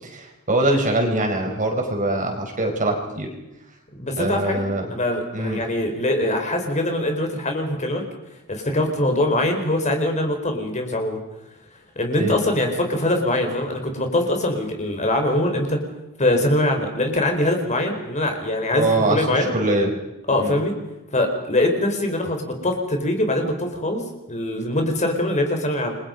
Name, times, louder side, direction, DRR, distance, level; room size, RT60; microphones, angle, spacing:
voice 1, 0.0-3.3 4.2-4.9 5.3-5.6 12.1-12.3 18.7-19.9 20.4-20.6, right 1 dB, 35° right, 3 dB, 4.8 m, -23 dB
voice 2, 3.9-4.6 4.9-8.0 8.5-11.2 12.0-15.8 16.2-19.5 20.3-20.7 21.1-26.0, left 1 dB, 35° left, 4 dB, 4.5 m, -23 dB
30.0 x 22.5 x 5.3 m, 0.96 s
head